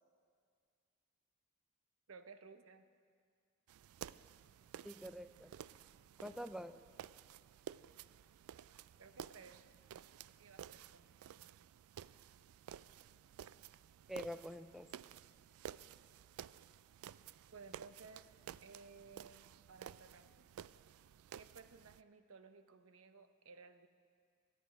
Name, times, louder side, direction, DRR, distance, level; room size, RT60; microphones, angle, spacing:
voice 1, 2.1-2.9 9.0-9.6 10.4-11.5 17.5-18.3 18.6-20.5 21.3-23.9, right 4 dB, 70° right, 9 dB, 0.8 m, -58 dB
sound 1, 3.7-22.0, right 9 dB, 90° right, 0.3 m, -54 dB
voice 2, 4.8-5.5 6.2-6.8 14.1-14.9, equal, ahead, 11 dB, 0.4 m, -46 dB
24.0 x 9.1 x 5.2 m, 2.2 s
head